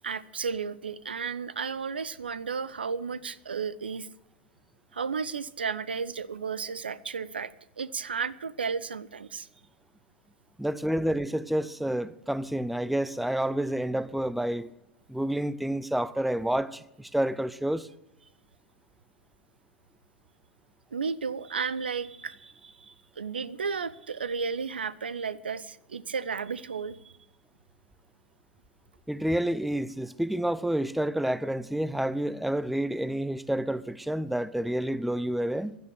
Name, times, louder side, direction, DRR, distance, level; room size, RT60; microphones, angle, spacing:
voice 1, 0.0-4.1 4.9-9.5 20.9-27.1, right 5 dB, 75° right, 0.7 m, -33 dB
voice 2, 10.6-14.7 15.1-17.9 29.1-35.8, right 1 dB, ahead, 0.5 m, -29 dB
16.0 x 12.0 x 6.5 m
figure-of-eight pair, 90°, 6 cm